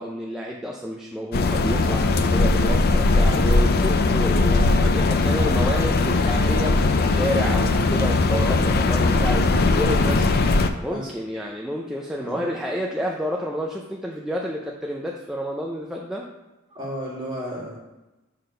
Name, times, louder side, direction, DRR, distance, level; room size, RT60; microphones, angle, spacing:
voice 1, 0.0-10.0 10.8-16.3, equal, ahead, -2 dB, 0.5 m, -30 dB
sound 1, 1.3-10.7, left 3 dB, 45° left, 0.5 m, -19 dB
voice 2, 10.0-10.3 10.8-11.1 12.2-12.4 16.7-17.8, right 1 dB, 20° right, -5 dB, 2.0 m, -33 dB
6.6 x 4.0 x 5.3 m, 1.0 s
head